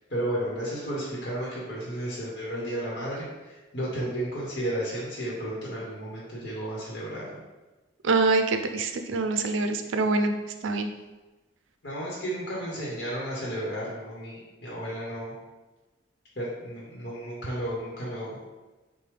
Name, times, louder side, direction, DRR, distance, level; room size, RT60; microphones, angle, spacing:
voice 1, 0.1-7.4 11.8-15.3 16.4-18.4, right 1 dB, 50° left, -6 dB, 1.1 m, -33 dB
voice 2, 8.0-10.3 10.6-10.9, right 3 dB, 85° right, 6 dB, 0.5 m, -25 dB
6.6 x 2.2 x 3.3 m, 1.2 s
head